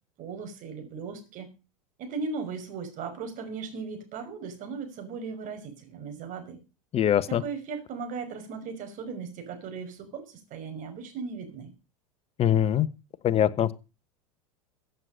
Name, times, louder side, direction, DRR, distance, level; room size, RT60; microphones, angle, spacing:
voice 1, 0.2-1.5 2.0-6.6 7.3-11.7, right 5 dB, 45° right, 7 dB, 5.7 m, -37 dB
voice 2, 6.9-7.4 12.4-12.9 13.2-13.7, left 10 dB, 30° left, 15 dB, 1.3 m, -22 dB
15.5 x 8.3 x 6.6 m, 0.32 s
hypercardioid pair, 90°, 19 cm